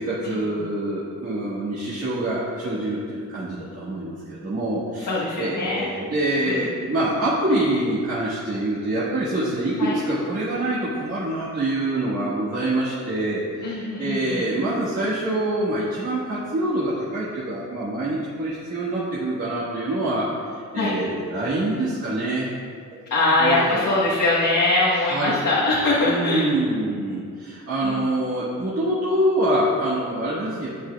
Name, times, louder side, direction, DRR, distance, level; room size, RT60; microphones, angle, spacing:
voice 1, 0.0-5.1 5.4-22.5 22.9-23.0 23.4-23.8 24.9-25.4 26.0-30.7, right 1 dB, 50° right, -9 dB, 1.7 m, -25 dB
voice 2, 5.0-5.9 6.4-6.5 9.8-9.9 13.6-14.4 20.7-20.9 23.1-26.5 27.8-28.0, left 2 dB, 70° left, -6 dB, 1.4 m, -22 dB
12.0 x 8.5 x 2.4 m, 2.1 s
wide cardioid pair, 130°, 31 cm